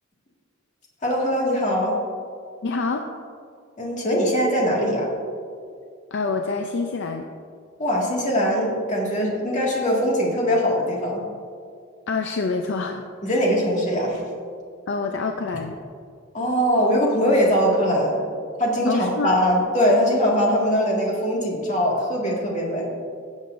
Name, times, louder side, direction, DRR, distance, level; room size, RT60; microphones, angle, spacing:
voice 1, 1.0-2.0 3.8-5.1 7.8-11.2 13.2-14.2 16.3-18.2 18.6-22.9, equal, 35° left, -3 dB, 2.0 m, -21 dB
voice 2, 2.6-3.1 6.1-7.3 12.1-13.5 14.9-15.8 18.9-19.4, left 4 dB, 60° left, 4 dB, 0.5 m, -27 dB
16.5 x 7.2 x 2.6 m, 2.2 s
head